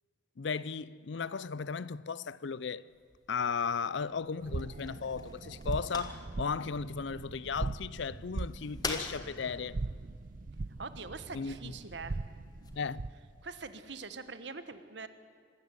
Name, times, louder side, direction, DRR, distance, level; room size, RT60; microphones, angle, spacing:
voice 1, 0.4-2.8 3.3-9.8 11.3-11.7 12.8-13.1, left 5 dB, 65° left, 0.5 m, -35 dB
sound 1, 2.9-12.8, left 3 dB, 20° left, 1.6 m, -46 dB
sound 2, 4.4-13.3, right 3 dB, 40° right, 0.5 m, -40 dB
voice 2, 10.8-12.2 13.4-15.1, right 4 dB, 60° right, 1.3 m, -43 dB
25.0 x 14.0 x 9.7 m
head